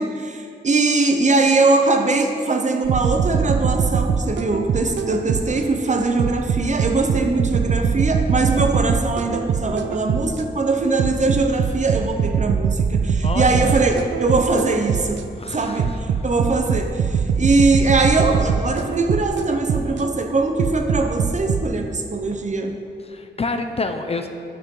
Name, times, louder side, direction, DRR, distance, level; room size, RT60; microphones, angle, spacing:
voice 1, 0.0-22.8, right 3 dB, 40° right, 5 dB, 0.7 m, -21 dB
sound 1, 2.8-5.7 6.2-10.5 11.0-15.3 15.8-20.1 20.6-21.6, right 6 dB, 85° right, 0.4 m, -22 dB
voice 2, 13.2-13.7 15.4-16.0 23.1-24.3, left 3 dB, 35° left, 6 dB, 0.5 m, -27 dB
11.0 x 6.0 x 3.8 m, 2.4 s
wide cardioid pair, 115°, 19 cm